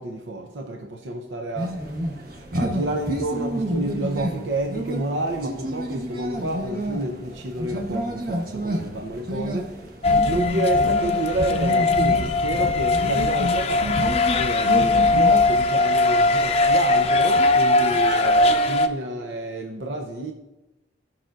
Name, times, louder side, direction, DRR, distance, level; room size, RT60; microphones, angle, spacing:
voice 1, 0.0-1.8 2.5-9.8 10.2-20.3, right 1 dB, 80° right, 0.7 m, -29 dB
sound 1, 1.5-18.8, right 1 dB, 50° right, 1.2 m, -31 dB
sound 2, 10.0-18.9, left 3 dB, 35° left, 0.5 m, -20 dB
16.0 x 5.8 x 2.5 m
head